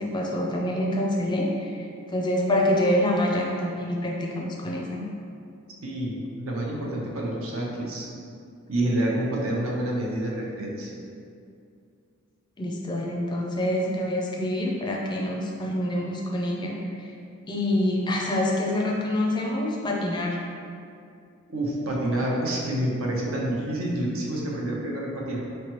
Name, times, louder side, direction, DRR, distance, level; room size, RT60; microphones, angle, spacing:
voice 1, 0.0-5.0 12.6-17.1 17.5-20.4, left 1 dB, 20° left, -1 dB, 0.4 m, -26 dB
voice 2, 5.8-8.1 8.7-11.0 21.5-25.4, right 1 dB, 70° right, -3 dB, 0.8 m, -28 dB
4.4 x 3.2 x 3.0 m, 2.4 s
head